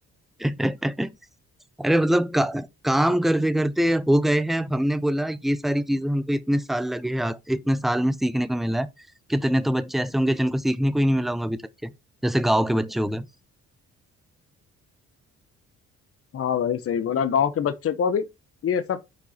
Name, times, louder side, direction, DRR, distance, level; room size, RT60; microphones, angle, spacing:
voice 1, 0.4-1.1 1.8-8.9 9.3-11.9 12.2-13.3, equal, ahead, 0.7 m, -23 dB
voice 2, 16.3-18.2 18.6-19.0, left 7 dB, 50° left, 0.9 m, -24 dB
6.8 x 4.6 x 4.3 m
cardioid pair, 90°, 30 cm